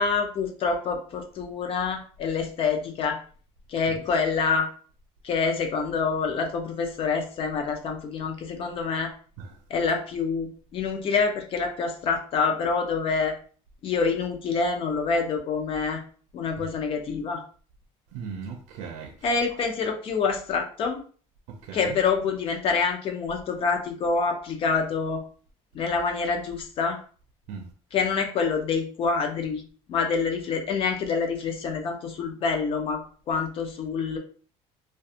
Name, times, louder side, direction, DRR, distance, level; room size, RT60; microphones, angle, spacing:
voice 1, 0.0-3.2 3.7-4.7 5.2-9.1 9.7-13.3 13.8-16.0 16.3-17.4 19.2-21.0 21.7-25.2 25.7-27.0 27.9-29.6 29.9-33.0 33.3-34.2, left 5 dB, 45° left, 0.6 m, -26 dB
voice 2, 18.1-19.1 21.5-22.0 27.5-27.7, right 6 dB, 85° right, 0.5 m, -38 dB
2.4 x 2.3 x 2.7 m
cardioid pair, 140°, 13 cm